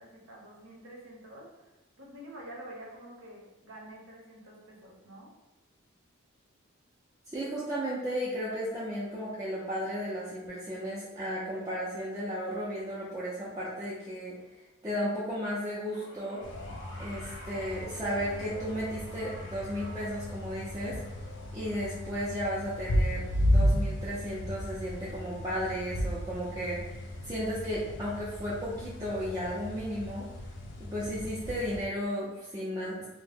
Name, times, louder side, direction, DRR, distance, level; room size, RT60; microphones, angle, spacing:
voice 1, 0.0-1.7 2.0-5.3, right 1 dB, 75° right, -3 dB, 0.8 m, -48 dB
voice 2, 7.3-14.3 14.8-16.4 17.0-21.0 21.5-30.3 30.8-33.1, equal, 15° right, -9 dB, 0.4 m, -34 dB
sound 1, 15.8-26.2 27.3-27.4, left 1 dB, 85° left, 0.7 m, -50 dB
sound 2, 16.4-31.9, equal, 55° left, 0.4 m, -34 dB
2.6 x 2.0 x 3.3 m, 1.0 s
head